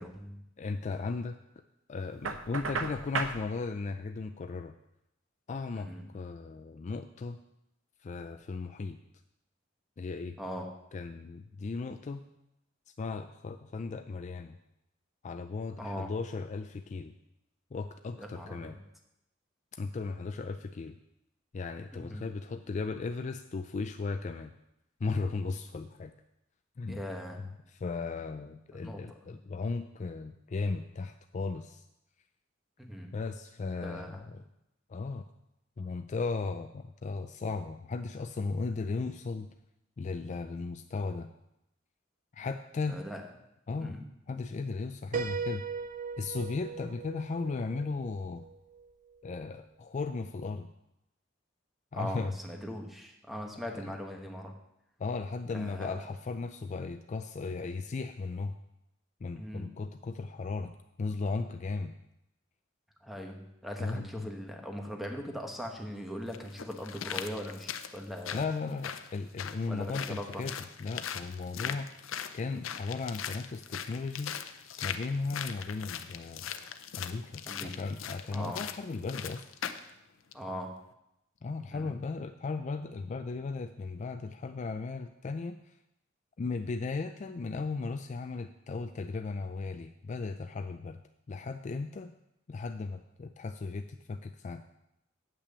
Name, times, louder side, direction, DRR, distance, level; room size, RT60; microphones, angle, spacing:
voice 1, 0.0-0.4 5.8-6.1 10.4-10.7 15.8-16.1 18.2-18.7 21.9-22.3 26.9-27.5 28.7-29.2 32.8-33.1 33.8-34.2 42.9-43.2 43.8-44.1 51.9-54.5 55.5-56.0 59.4-59.7 63.0-68.4 69.7-70.4 71.6-71.8 77.5-77.7 78.3-78.6 80.3-80.8 81.7-81.9, equal, ahead, 2 dB, 1.2 m, -40 dB
voice 2, 0.6-1.4 1.9-4.7 5.5-7.4 8.0-9.0 10.0-10.4 10.9-12.2 13.0-14.5 15.2-17.1 17.7-18.8 19.7-21.0 21.5-24.5 25.0-26.1 26.8-27.0 27.7-31.8 33.1-34.4 34.9-35.2 35.8-39.5 40.0-41.3 42.3-43.0 43.7-44.0 44.3-45.6 46.2-48.4 49.2-50.7 51.9-52.4 53.8-53.9 55.0-58.5 59.2-60.7 61.0-61.9 63.8-64.3 68.3-71.9 72.3-74.3 74.8-76.5 77.0-79.5 81.4-85.7 86.4-91.0 91.3-92.1 92.5-94.6, left 4 dB, 40° left, 8 dB, 0.4 m, -36 dB
Knock, 2.2-3.4, right 4 dB, 85° right, 0.8 m, -34 dB
Piano, 45.1-48.9, right 5 dB, 40° right, 0.6 m, -38 dB
sound 1, 65.5-65.6 66.3-79.9 80.3-80.4, left 8 dB, 90° left, 0.6 m, -40 dB
8.4 x 5.9 x 6.9 m, 0.85 s
head